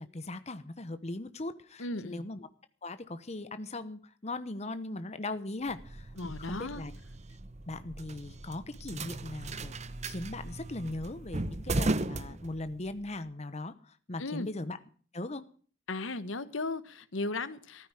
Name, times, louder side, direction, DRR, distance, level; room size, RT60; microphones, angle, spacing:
voice 1, 0.0-2.5 2.8-6.9 7.7-9.7 10.0-14.8 15.1-15.4, left 2 dB, 35° left, 11 dB, 1.0 m, -39 dB
voice 2, 1.8-2.3 6.2-6.8 14.2-14.5 15.9-17.9, left 2 dB, 90° left, 14 dB, 1.2 m, -36 dB
sound 1, 5.7-13.0, right 2 dB, 35° right, 0.9 m, -37 dB
14.5 x 13.0 x 4.9 m, 0.43 s
head